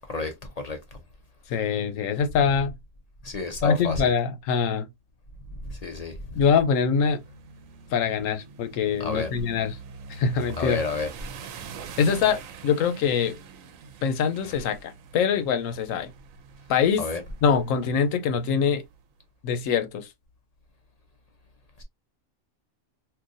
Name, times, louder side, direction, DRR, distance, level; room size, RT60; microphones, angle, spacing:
voice 1, 0.0-1.0 3.2-4.1 5.5-6.5 9.0-9.3 10.6-11.1 14.4-14.7 17.0-17.2, left 3 dB, 50° left, 0.5 m, -31 dB
voice 2, 1.5-2.8 3.6-4.9 6.4-7.2 7.9-9.7 10.1-10.8 12.0-13.4 14.0-16.1 16.7-17.0 17.4-18.8 19.4-20.1, left 6 dB, 85° left, 1.0 m, -24 dB
sound 1, 6.9-19.0, right 5 dB, 85° right, 1.0 m, -45 dB
3.8 x 2.6 x 2.5 m
omnidirectional pair, 1.3 m